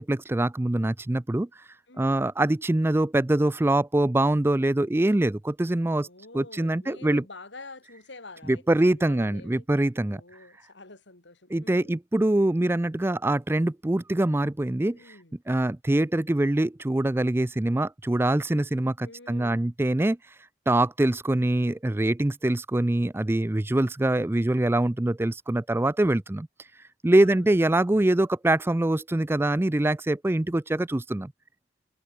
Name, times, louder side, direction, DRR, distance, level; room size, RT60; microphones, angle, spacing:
voice 1, 0.0-1.5 2.0-6.1 6.3-7.2 8.5-10.2 11.5-15.0 15.5-20.2 20.7-26.5 27.0-31.3, right 1 dB, 10° right, 0.4 m, -24 dB
voice 2, 1.9-2.3 6.0-9.7 10.1-12.0 14.9-15.4 19.0-19.6 27.1-27.7, left 3 dB, 70° left, 3.2 m, -47 dB
head